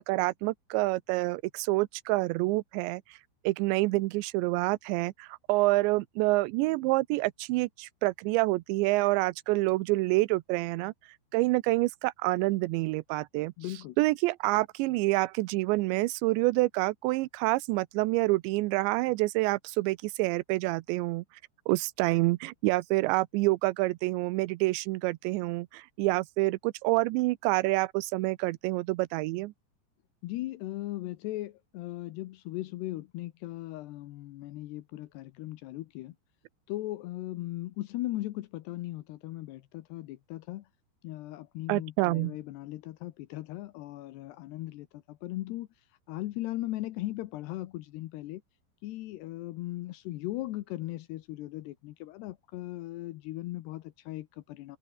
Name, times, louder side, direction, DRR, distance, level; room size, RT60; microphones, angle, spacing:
voice 1, 0.1-3.2 3.4-10.9 11.3-13.5 14.0-21.2 21.7-29.5 41.7-42.4, right 21 dB, 90° right, 3.0 m, -27 dB
voice 2, 13.6-14.0 30.2-36.2 36.7-40.7 41.0-45.7 46.1-48.4 48.8-54.8, left 16 dB, 75° left, 2.9 m, -38 dB
omnidirectional pair, 5.0 m